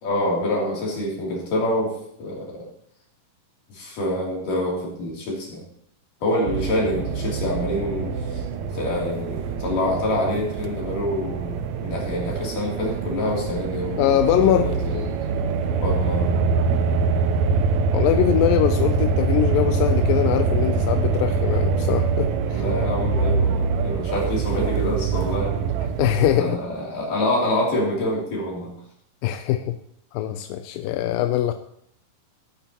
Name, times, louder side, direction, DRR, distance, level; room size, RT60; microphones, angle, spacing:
voice 1, 0.0-2.7 3.7-5.6 6.2-8.4 8.7-15.1 15.8-16.3 22.5-25.7 26.3-28.7, left 1 dB, 70° left, -3 dB, 4.7 m, -26 dB
sound 1, 6.5-26.3, right 4 dB, 75° right, 1.7 m, -24 dB
voice 2, 14.0-14.7 17.9-22.6 26.0-26.6 29.2-29.8 30.1-31.5, left 12 dB, 90° left, 8 dB, 2.3 m, -22 dB
18.0 x 9.1 x 3.0 m, 0.69 s
omnidirectional pair, 4.0 m